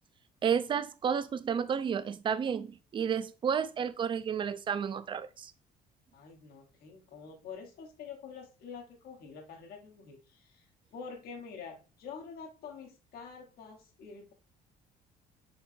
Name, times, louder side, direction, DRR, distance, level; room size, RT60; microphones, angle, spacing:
voice 1, 0.4-5.5, right 7 dB, 30° right, 0.4 m, -31 dB
voice 2, 6.1-14.3, left 5 dB, 65° left, 1.1 m, -47 dB
4.3 x 3.9 x 2.6 m
cardioid pair, 110°, 17 cm